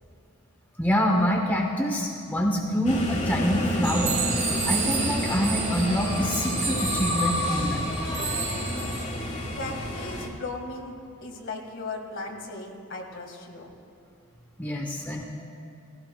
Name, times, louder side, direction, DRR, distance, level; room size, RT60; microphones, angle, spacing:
voice 1, 0.8-4.3 4.6-7.9 14.6-15.2, equal, 10° left, 1 dB, 0.7 m, -26 dB
sound 1, 2.9-10.3, left 1 dB, 35° left, 1.5 m, -29 dB
sound 2, 3.8-9.0, right 6 dB, 30° right, 1.6 m, -31 dB
voice 2, 9.5-13.7, left 3 dB, 60° left, 2 dB, 1.7 m, -37 dB
18.0 x 16.5 x 2.2 m, 2.7 s
head